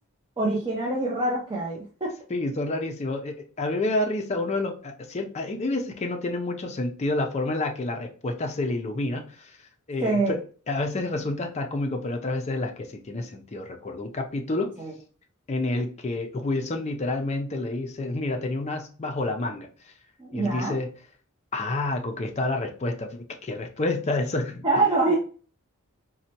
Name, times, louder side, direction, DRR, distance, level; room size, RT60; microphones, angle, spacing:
voice 1, 0.4-2.1 10.0-10.3 14.8-14.9 20.2-20.8 24.6-25.2, right 2 dB, 20° right, -3 dB, 0.5 m, -25 dB
voice 2, 2.3-9.6 9.9-10.4 10.7-14.7 15.5-19.7 20.3-20.9 21.5-24.7, left 2 dB, 30° left, 4 dB, 0.4 m, -29 dB
4.0 x 2.2 x 2.7 m, 0.41 s
head